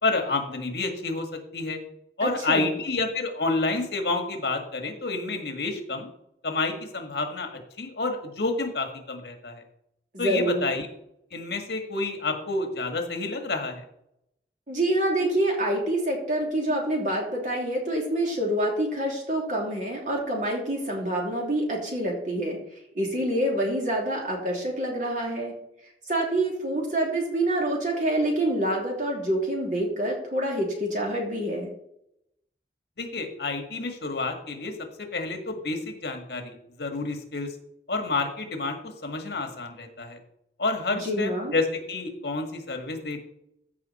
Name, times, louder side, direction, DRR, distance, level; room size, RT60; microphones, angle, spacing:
voice 1, 0.0-1.8 2.2-6.1 6.4-9.6 10.2-10.9 11.3-13.8 33.0-34.7 35.0-37.5 37.9-40.2 40.6-43.2, left 3 dB, 65° left, 4 dB, 1.7 m, -29 dB
voice 2, 2.2-2.7 10.1-10.6 14.7-22.6 22.9-25.6 26.1-31.7 41.0-41.5, right 1 dB, 45° right, -1 dB, 2.9 m, -26 dB
14.5 x 5.5 x 4.2 m, 0.77 s
head